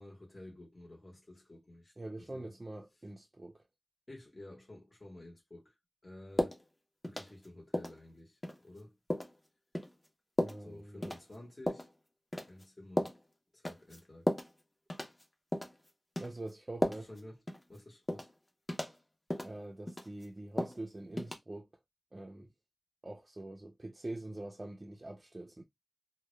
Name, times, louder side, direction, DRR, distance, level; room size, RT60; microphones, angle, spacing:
voice 1, 0.0-2.5 4.1-5.7 6.0-6.6 7.0-9.0 10.6-11.9 12.5-13.2 13.5-14.3 16.8-17.4 17.7-18.3, left 1 dB, 40° left, 0.9 m, -52 dB
voice 2, 2.0-3.6 10.4-11.1 16.2-17.1 19.4-21.7 22.1-22.5 23.0-25.6, right 2 dB, 35° right, 0.3 m, -44 dB
sound 1, 6.4-6.6 7.0-7.5 7.7-8.0 8.4-8.6 9.1-9.3 9.7-9.9 10.4-10.6 11.0-11.2 11.7-11.9 12.3-12.6 13.0-13.2 13.7-14.0 14.3-14.5 14.9-15.2 15.5-15.8 16.2-16.3 16.8-17.2 17.5-17.6 18.1-18.3 18.7-18.9 19.3-19.5 19.9-20.2 20.6-20.8 21.2-21.4, left 1 dB, 25° left, 0.5 m, -34 dB
2.1 x 2.0 x 3.0 m
wide cardioid pair, 80°, 0 cm